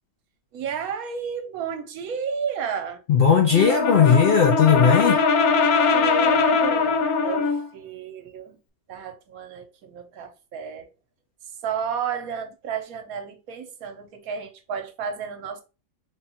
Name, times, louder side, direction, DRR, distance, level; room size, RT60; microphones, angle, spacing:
voice 1, 0.5-3.0 5.9-8.6 8.9-10.9 11.6-15.6, right 7 dB, 80° right, 1.2 m, -32 dB
voice 2, 3.1-5.2, left 7 dB, 60° left, 0.6 m, -17 dB
Brass instrument, 3.5-7.7, left 4 dB, 80° left, 1.1 m, -21 dB
3.5 x 2.3 x 4.1 m
omnidirectional pair, 1.5 m